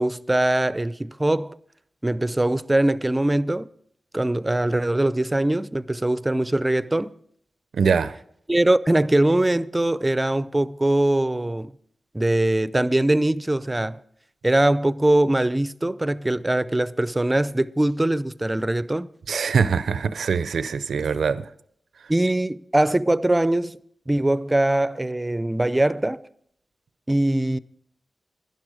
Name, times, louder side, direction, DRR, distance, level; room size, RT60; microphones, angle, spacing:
voice 1, 0.0-1.6 2.0-3.7 4.1-7.1 8.5-11.7 12.1-14.0 14.4-19.1 22.1-23.8 24.1-26.2 27.1-27.6, right 1 dB, 20° right, 0.5 m, -22 dB
voice 2, 7.7-8.2 19.3-21.5, right 6 dB, 80° right, 0.4 m, -23 dB
12.0 x 10.5 x 5.0 m
cardioid pair, 50°, 0 cm